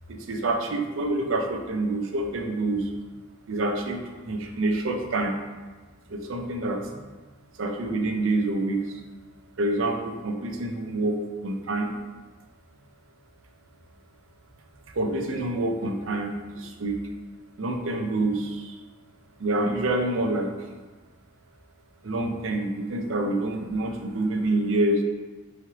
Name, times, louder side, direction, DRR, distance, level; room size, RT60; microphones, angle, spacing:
voice 1, 0.1-2.9 3.5-5.3 6.1-6.9 7.6-9.0 9.6-11.2 11.4-11.9 14.9-17.0 17.6-18.7 19.4-20.5 22.0-25.0, right 2 dB, 65° right, 3 dB, 0.5 m, -27 dB
4.7 x 3.1 x 2.8 m, 1.3 s
head